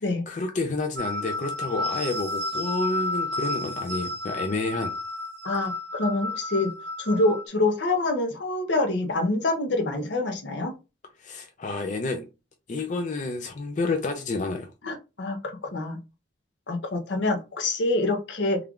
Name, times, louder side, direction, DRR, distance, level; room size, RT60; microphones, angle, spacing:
voice 1, 0.3-4.9 11.2-12.3 12.7-14.7, left 3 dB, 40° left, 0.4 m, -29 dB
sound 1, 1.0-7.5, left 2 dB, 55° right, 0.9 m, -32 dB
voice 2, 5.4-6.7 7.0-10.7 14.8-16.0 16.7-18.6, left 2 dB, 70° left, 0.7 m, -26 dB
3.2 x 2.3 x 3.6 m
head